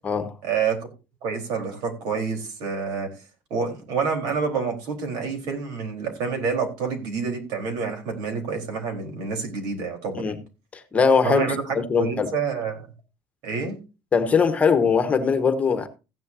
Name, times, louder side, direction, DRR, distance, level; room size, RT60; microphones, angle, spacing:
voice 1, 0.4-0.9 1.2-3.1 3.5-10.3 11.2-12.9 13.4-13.8, right 5 dB, 80° right, 4.0 m, -28 dB
voice 2, 10.7-11.4 11.7-12.3 14.1-15.9, left 5 dB, 20° left, 1.2 m, -21 dB
15.5 x 10.5 x 2.7 m
cardioid pair, 170°, 7 cm